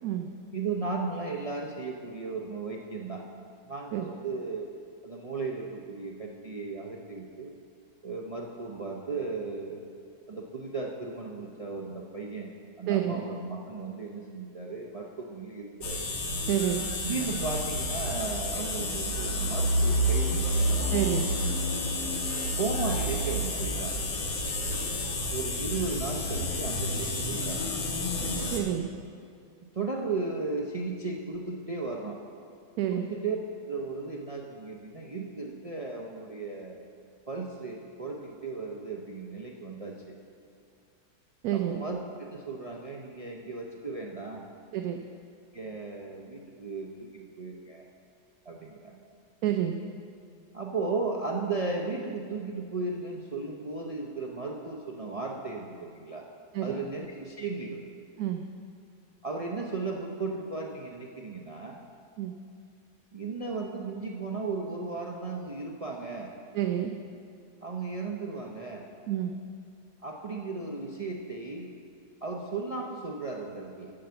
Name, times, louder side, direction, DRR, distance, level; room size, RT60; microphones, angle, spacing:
voice 1, 0.5-3.3 3.7-4.7 5.0-7.5 8.0-9.9 10.3-16.1 17.0-20.7 22.6-24.1 25.3-27.7 29.7-32.2 32.9-33.4 33.7-36.8 37.3-40.2 41.5-44.5 45.5-47.8 48.4-49.0 50.5-56.3 56.6-57.8 59.2-61.8 63.1-66.3 67.6-68.9 70.0-71.7 72.2-73.9, right 3 dB, 55° right, -1 dB, 0.4 m, -35 dB
voice 2, 12.9-13.2 16.5-16.9 20.9-21.3 28.5-28.9 32.8-33.1 41.4-41.8 44.7-45.0 49.4-49.8 56.5-56.7 58.2-58.4 62.2-62.3 66.5-66.9 69.1-69.3, right 11 dB, 70° right, 5 dB, 1.0 m, -28 dB
sound 1, 15.8-28.6, equal, 85° left, 1.8 m, -29 dB
8.7 x 7.9 x 6.9 m, 2.3 s
omnidirectional pair, 1.7 m